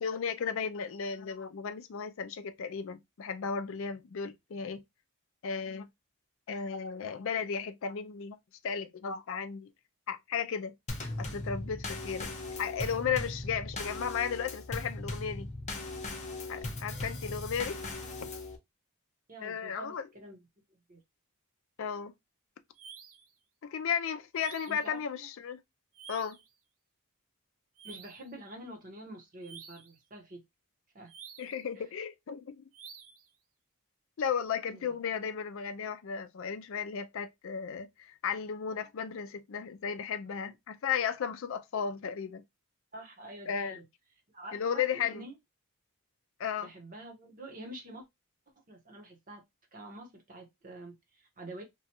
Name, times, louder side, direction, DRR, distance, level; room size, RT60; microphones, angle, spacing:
voice 1, 0.0-4.8 5.4-5.9 6.5-8.4 8.6-9.7 10.1-10.7 11.2-12.3 12.6-15.5 16.5-18.0 19.4-20.1 21.8-22.1 23.7-25.6 26.1-26.4 31.4-32.6 34.2-42.4 43.5-43.8 44.5-45.2 46.4-46.7, left 7 dB, 60° left, 0.4 m, -34 dB
Drum kit / Snare drum / Bass drum, 10.9-18.6, left 2 dB, 30° left, 0.7 m, -38 dB
voice 2, 19.3-20.4 20.9-21.0 24.7-25.3 27.8-30.4 30.9-31.1 34.7-34.9 42.9-43.8 44.3-45.3 46.6-48.1 48.7-49.4 49.7-51.6, right 1 dB, 40° right, 1.0 m, -47 dB
sound 1, 22.7-23.3 24.3-24.9 25.9-26.5 27.8-28.3 29.4-30.0 31.1-31.6 32.7-33.3, right 7 dB, 65° right, 0.6 m, -50 dB
3.0 x 2.3 x 2.8 m
head